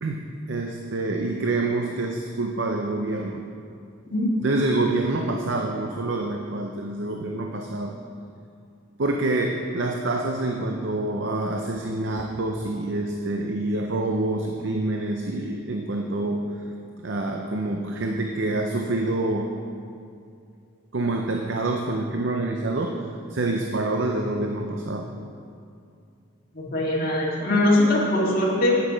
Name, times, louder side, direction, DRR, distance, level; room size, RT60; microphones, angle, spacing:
voice 1, 0.0-3.4 4.4-8.0 9.0-16.5 17.0-19.5 20.9-23.0 23.3-25.1, right 2 dB, 60° right, 2 dB, 0.6 m, -27 dB
voice 2, 26.5-28.8, left 1 dB, 45° left, -6 dB, 2.1 m, -21 dB
8.4 x 8.3 x 5.0 m, 2.5 s
head